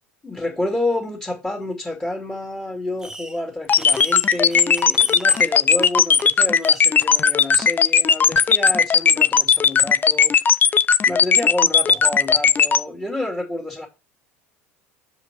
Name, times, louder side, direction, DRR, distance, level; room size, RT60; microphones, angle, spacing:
voice 1, 0.2-10.8 11.1-13.9, left 1 dB, 10° left, 2.5 m, -29 dB
Fireworks, 3.0-3.4 3.7-6.3 6.6-7.1 7.6-7.7 8.3-8.4, right 2 dB, 10° right, 0.8 m, -38 dB
sound 1, 3.7-12.8, left 6 dB, 25° left, 0.5 m, -16 dB
6.9 x 5.1 x 4.6 m
figure-of-eight pair, 70°, 7 cm